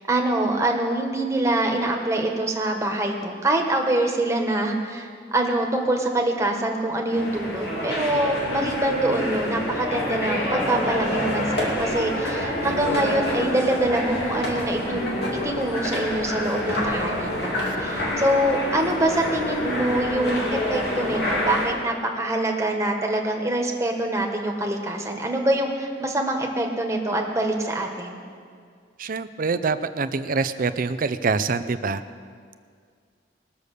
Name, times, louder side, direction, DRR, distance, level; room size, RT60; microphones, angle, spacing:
voice 1, 0.1-15.0 15.4-20.4 20.7-28.2, right 1 dB, 15° right, 1 dB, 1.5 m, -25 dB
sound 1, 7.1-21.7, left 1 dB, 65° left, 2.6 m, -27 dB
voice 2, 29.0-32.0, right 4 dB, 50° right, 12 dB, 0.6 m, -25 dB
20.5 x 6.9 x 6.7 m, 2.1 s
head